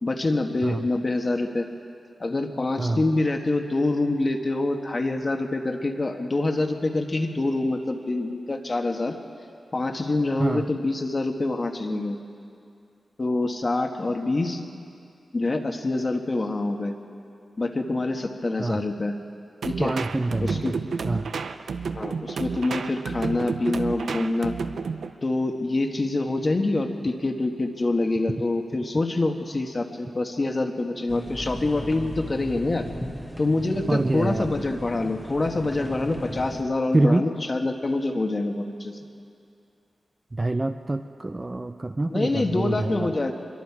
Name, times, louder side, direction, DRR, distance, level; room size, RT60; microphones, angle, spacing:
voice 1, 0.0-1.7 2.2-9.2 9.7-12.2 13.2-14.6 15.3-16.9 17.6-19.1 19.6-19.9 20.4-20.8 21.9-24.5 25.2-32.9 33.4-39.0 42.1-43.3, left 2 dB, 30° left, 4 dB, 1.5 m, -26 dB
sound 1, 19.6-25.1, right 5 dB, 85° right, 0.8 m, -31 dB
voice 2, 19.8-20.7 21.0-21.3 33.9-34.5 36.9-37.3 40.3-43.1, right 2 dB, 20° right, 7 dB, 0.6 m, -25 dB
sound 2, 31.1-36.6, equal, 5° left, 1.3 m, -37 dB
25.0 x 22.5 x 4.8 m, 2.5 s
wide cardioid pair, 140°, 0 cm